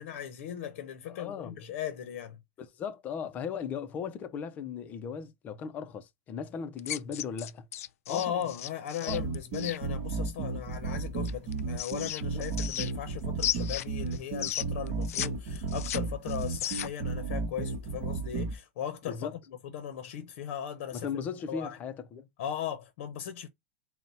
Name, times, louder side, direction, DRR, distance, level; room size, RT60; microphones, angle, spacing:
voice 1, 0.0-2.4 8.1-21.1 21.5-21.8 22.4-23.5, left 9 dB, 55° left, 0.7 m, -37 dB
voice 2, 1.1-1.6 2.6-7.7 8.1-8.4 9.0-9.2 12.3-12.4 19.1-19.3 20.9-22.3, left 6 dB, 20° left, 0.4 m, -37 dB
sound 1, 6.8-9.8 11.2-13.1 13.4-15.3 15.5-17.1, left 12 dB, 85° left, 0.3 m, -35 dB
sound 2, 9.1-18.5, right 4 dB, 45° right, 0.9 m, -33 dB
3.9 x 2.1 x 4.1 m
supercardioid pair, 165°, 8 cm